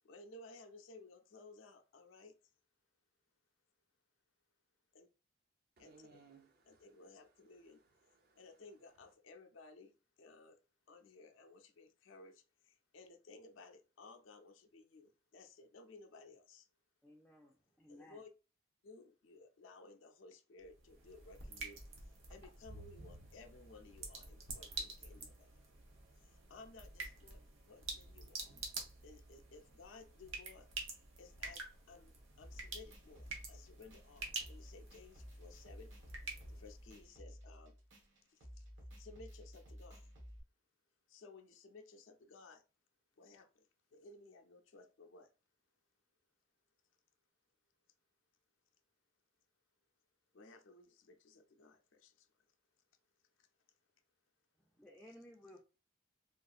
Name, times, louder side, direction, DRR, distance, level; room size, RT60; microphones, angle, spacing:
voice 1, 0.0-2.5 4.9-5.1 5.8-6.1 6.7-7.8 8.4-10.6 10.9-16.7 17.9-18.3 18.8-21.8 22.3-25.6 26.2-28.5 29.0-30.7 30.9-35.9 36.5-37.8 38.3-38.7 39.0-40.1 41.1-42.6 43.2-45.3 50.3-52.4 53.4-53.5, left 3 dB, 80° left, 0.5 m, -58 dB
voice 2, 5.8-7.0 7.5-8.5, right 4 dB, 50° right, 0.5 m, -64 dB
voice 3, 17.0-18.2 54.6-55.6, left 1 dB, 5° left, 0.3 m, -58 dB
sound 1, 20.6-37.1, right 3 dB, 90° right, 0.9 m, -49 dB
sound 2, 32.4-40.4, equal, 70° right, 1.3 m, -54 dB
3.5 x 2.4 x 2.4 m
head